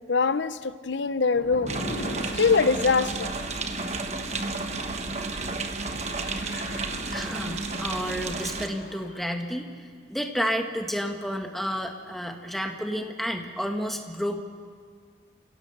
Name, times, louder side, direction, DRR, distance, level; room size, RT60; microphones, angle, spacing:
voice 1, 0.1-1.8 2.3-3.3, left 4 dB, 85° left, 14 dB, 0.8 m, -23 dB
sound 1, 1.3-3.1 3.7-9.2, left 1 dB, 65° left, 3.5 m, -41 dB
sound 2, 1.7-8.7, right 3 dB, 35° right, 1.3 m, -32 dB
voice 2, 7.1-9.7 10.1-14.4, equal, ahead, 3 dB, 1.5 m, -31 dB
29.0 x 17.0 x 6.7 m, 2.1 s
head